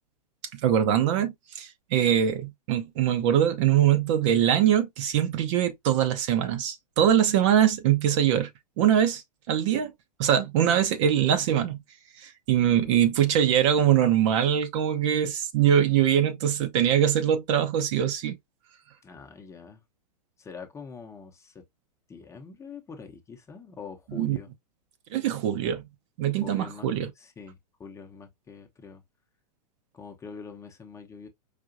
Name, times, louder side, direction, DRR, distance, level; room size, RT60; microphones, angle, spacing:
voice 1, 0.5-8.5 8.8-9.2 9.5-9.9 10.2-11.8 12.2-18.4 24.1-24.4 25.1-25.8 26.2-27.1, right 10 dB, 45° right, 0.8 m, -23 dB
voice 2, 12.7-13.1 19.0-19.8 20.4-21.5 22.1-24.5 26.4-26.9 27.2-29.0 29.9-31.3, left 5 dB, 15° left, 0.9 m, -44 dB
5.0 x 2.7 x 2.6 m
figure-of-eight pair, 105°, 21 cm